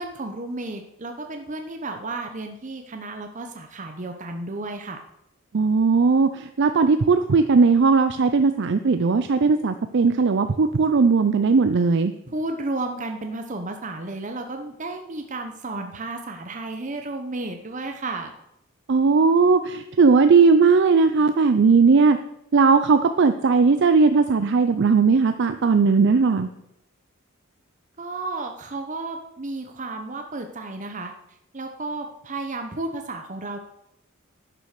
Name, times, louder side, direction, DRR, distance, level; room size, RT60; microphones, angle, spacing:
voice 1, 0.0-5.0 12.3-18.3 28.0-31.1 31.5-33.6, right 2 dB, 35° right, 5 dB, 0.8 m, -32 dB
voice 2, 5.5-12.1 18.9-22.2 22.5-26.5, right 4 dB, 55° right, 9 dB, 0.5 m, -18 dB
11.0 x 6.3 x 6.5 m, 0.82 s
head